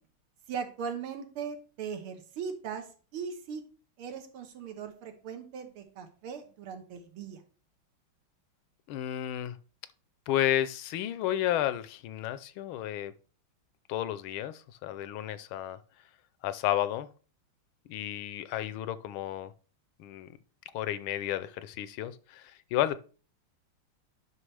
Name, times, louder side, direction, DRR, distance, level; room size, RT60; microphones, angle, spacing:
voice 1, 0.5-2.9 3.1-3.6 4.0-7.4, right 6 dB, 85° right, 2.0 m, -39 dB
voice 2, 8.9-9.6 10.3-13.1 13.9-15.8 16.4-17.1 17.9-19.5 20.0-20.4 20.7-23.0, left 12 dB, 80° left, 1.4 m, -32 dB
9.6 x 5.9 x 3.3 m
omnidirectional pair, 2.3 m